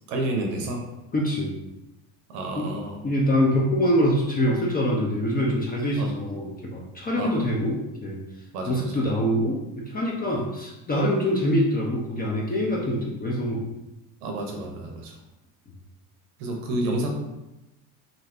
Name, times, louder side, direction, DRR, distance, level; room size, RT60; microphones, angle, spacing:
voice 1, 0.1-0.8 2.3-3.0 6.0-6.1 7.2-7.4 8.5-9.0 14.2-15.2 16.4-17.1, right 2 dB, 85° right, 1 dB, 0.7 m, -30 dB
voice 2, 1.1-1.5 2.6-2.7 3.0-8.2 8.7-13.7 16.7-16.8, equal, 20° left, -3 dB, 0.5 m, -24 dB
2.6 x 2.5 x 3.2 m, 0.97 s
supercardioid pair, 90°, 44 cm